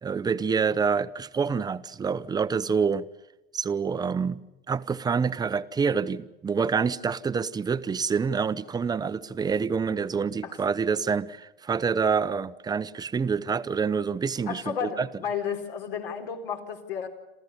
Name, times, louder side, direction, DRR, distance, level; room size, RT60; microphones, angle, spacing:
voice 1, 0.0-3.1 3.5-4.4 4.7-15.1, right 5 dB, 15° right, 0.8 m, -27 dB
voice 2, 14.5-17.1, left 7 dB, 65° left, 4.0 m, -32 dB
27.5 x 14.5 x 9.9 m
hypercardioid pair, 100°, 29 cm